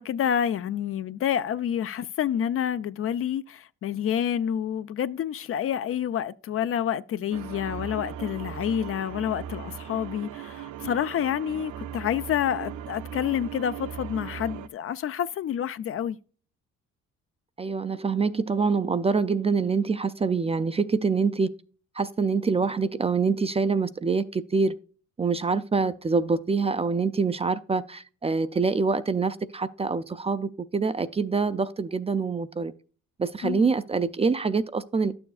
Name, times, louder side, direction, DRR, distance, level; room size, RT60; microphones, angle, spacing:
voice 1, 0.0-16.2 33.4-33.7, left 9 dB, 45° left, 0.4 m, -28 dB
sound 1, 7.3-14.7, right 9 dB, 70° right, 0.5 m, -38 dB
voice 2, 17.6-21.5 22.0-24.8 25.2-32.7 33.2-35.1, right 4 dB, 20° right, 0.4 m, -25 dB
11.5 x 7.0 x 2.4 m
cardioid pair, 80°, 31 cm